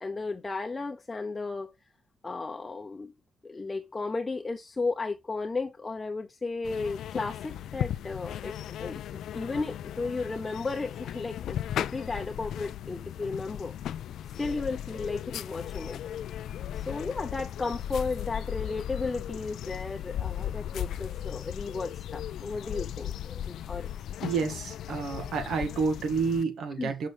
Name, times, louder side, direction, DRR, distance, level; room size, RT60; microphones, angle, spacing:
voice 1, 0.0-1.7 2.2-3.1 3.4-8.5 8.8-13.7 14.4-16.0 16.7-23.9 26.8-26.9, left 3 dB, 25° left, 0.8 m, -34 dB
sound 1, 6.6-26.4, left 10 dB, 75° left, 0.3 m, -36 dB
voice 2, 24.2-27.1, right 5 dB, 70° right, 1.8 m, -29 dB
6.6 x 6.3 x 3.4 m
cardioid pair, 90°, 0 cm